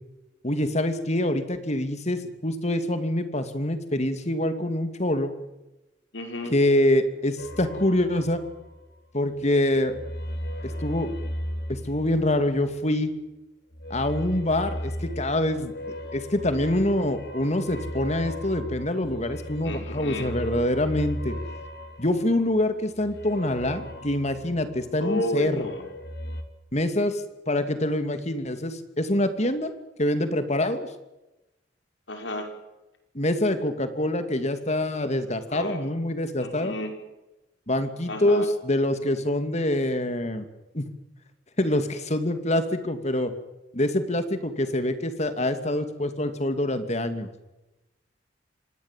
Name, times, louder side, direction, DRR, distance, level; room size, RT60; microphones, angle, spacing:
voice 1, 0.4-5.3 6.5-8.4 9.1-9.9 10.8-11.1 11.7-13.1 13.9-15.7 16.1-21.4 22.0-25.7 26.7-29.7 30.0-30.9 33.1-36.7 37.7-40.5 40.7-40.8 41.6-43.3 43.7-47.3, left 1 dB, 35° left, 9 dB, 2.7 m, -25 dB
voice 2, 6.1-6.5 19.6-20.3 25.0-25.8 32.1-32.5 35.5-35.8 36.4-36.9 38.1-38.5, left 1 dB, 80° left, 5 dB, 5.7 m, -31 dB
sound 1, 7.4-9.0 9.3-12.9 13.7-25.1 25.4-26.4, equal, 60° left, 3.3 m, -37 dB
26.0 x 19.0 x 7.6 m, 1.0 s
head